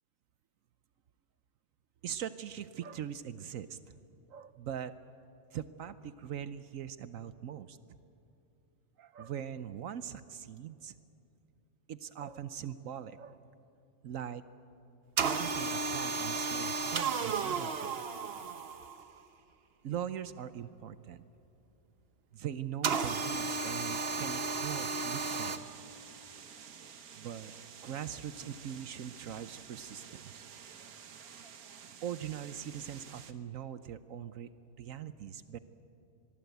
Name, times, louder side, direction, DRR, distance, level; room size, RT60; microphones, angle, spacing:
voice 1, 2.0-4.0 4.3-4.9 5.5-7.8 9.0-10.9 11.9-13.4 14.0-14.4 15.2-18.0 19.8-21.2 22.3-25.9 27.1-27.5 27.8-30.4 32.0-34.5 34.8-35.6, right 9 dB, 70° right, 13 dB, 1.1 m, -41 dB
sound 1, 15.2-19.1 22.8-25.6, right 4 dB, 50° right, 1.1 m, -33 dB
sound 2, 25.2-33.3, right 7 dB, 90° right, 1.6 m, -51 dB
24.5 x 21.0 x 8.1 m, 2.7 s
omnidirectional pair, 1.5 m